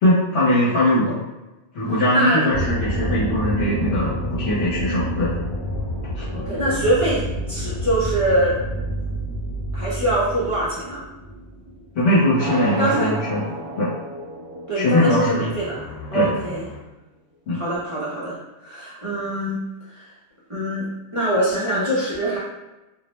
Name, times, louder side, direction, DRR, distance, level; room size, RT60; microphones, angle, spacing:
voice 1, 0.0-1.2 1.7-5.3 6.2-6.3 11.9-13.5 13.8-13.9 14.7-15.5 16.1-16.3 17.5-17.6, left 1 dB, 65° left, -9 dB, 1.0 m, -20 dB
voice 2, 2.1-2.6 6.3-8.5 9.7-11.0 12.8-13.1 14.7-15.7 16.1-16.6 17.5-18.4 18.6-19.6 19.9-20.1 20.5-20.9 21.1-22.4, right 1 dB, 40° right, -9 dB, 0.5 m, -23 dB
sound 1, 2.5-12.5 12.8-12.9 15.4-16.8, equal, 90° left, 1.0 m, -29 dB
sound 2, 12.4-16.4, right 1 dB, 70° right, 0.9 m, -33 dB
2.5 x 2.0 x 3.0 m, 1.0 s
omnidirectional pair, 1.2 m